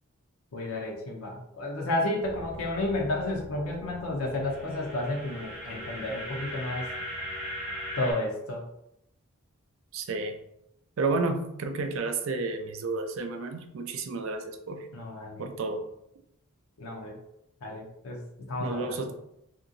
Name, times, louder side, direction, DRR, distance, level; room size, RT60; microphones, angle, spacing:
voice 1, 0.5-6.9 8.0-8.6 14.9-15.5 16.8-17.2 17.6-18.2 18.5-19.0, left 2 dB, 70° left, 0 dB, 0.5 m, -32 dB
sound 1, 2.2-8.1, equal, 5° right, 0.7 m, -39 dB
voice 2, 9.9-10.4 11.0-14.9 15.4-15.8 18.6-19.1, right 3 dB, 60° right, 6 dB, 0.4 m, -31 dB
2.8 x 2.5 x 2.5 m, 0.80 s
head